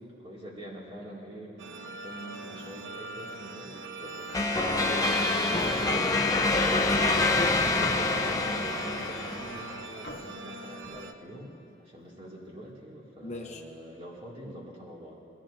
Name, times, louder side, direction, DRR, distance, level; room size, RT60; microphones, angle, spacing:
voice 1, 0.0-5.2 7.0-11.5 11.8-15.2, equal, 30° right, -4 dB, 2.0 m, -45 dB
sound 1, 1.6-11.1, right 3 dB, 85° right, 0.8 m, -41 dB
sound 2, 4.3-9.8, left 2 dB, 20° left, 0.5 m, -26 dB
voice 2, 4.8-6.4 7.0-7.2 13.2-13.6, left 2 dB, 35° left, 2 dB, 1.0 m, -38 dB
sound 3, 7.8-8.5 9.7-9.8 10.0-11.5 12.3-12.7, left 2 dB, 70° left, 1.2 m, -42 dB
21.0 x 14.0 x 2.5 m, 2.6 s
head